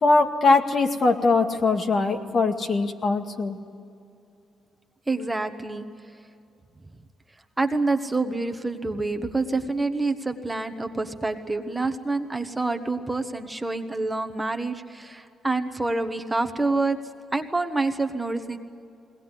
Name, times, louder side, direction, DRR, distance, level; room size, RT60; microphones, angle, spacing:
voice 1, 0.0-3.6, left 3 dB, 45° left, 4 dB, 2.0 m, -21 dB
voice 2, 5.1-5.8 7.6-17.0 17.3-18.6, right 3 dB, 15° right, 6 dB, 1.4 m, -27 dB
21.5 x 19.0 x 10.0 m, 2.5 s
cardioid pair, 90°, 0 cm